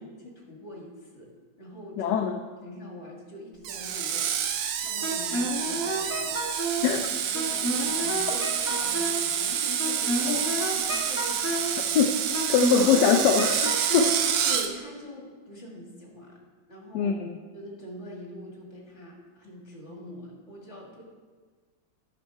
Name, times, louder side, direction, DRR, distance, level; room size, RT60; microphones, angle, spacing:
voice 1, 0.0-1.3 1.6-2.2 2.6-4.3 4.5-7.0 7.3-10.4 10.7-11.8 12.3-12.6 14.4-16.3 16.7-17.2 17.5-21.0, left 1 dB, 35° left, -2 dB, 2.2 m, -43 dB
voice 2, 2.0-2.4 6.8-7.0 10.3-10.4 11.9-12.1 12.5-14.1 16.9-17.4, left 7 dB, 70° left, 5 dB, 1.1 m, -23 dB
Screech, 3.6-14.7, right 8 dB, 70° right, 1.3 m, -28 dB
Wind instrument woodwind instrument, 5.0-6.9 7.3-9.3 9.8-11.8 12.3-14.2, right 1 dB, 15° left, 0.4 m, -30 dB
10.5 x 6.7 x 4.6 m, 1.5 s
omnidirectional pair, 2.2 m